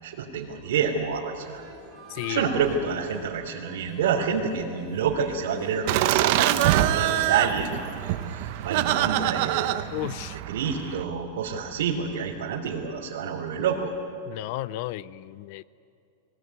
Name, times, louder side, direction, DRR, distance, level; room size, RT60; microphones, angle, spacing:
voice 1, 0.0-1.6 2.3-9.9 10.5-13.9, right 6 dB, 75° right, -5 dB, 3.4 m, -28 dB
sound 1, 1.4-9.4, right 4 dB, 15° right, 3.5 m, -45 dB
voice 2, 2.1-2.5 9.9-10.4 14.3-15.6, left 17 dB, 45° left, 20 dB, 0.5 m, -33 dB
Laughter, 5.9-11.0, right 13 dB, 45° right, 0.9 m, -25 dB
22.5 x 18.5 x 9.6 m, 2.5 s
supercardioid pair, 170°, 0 cm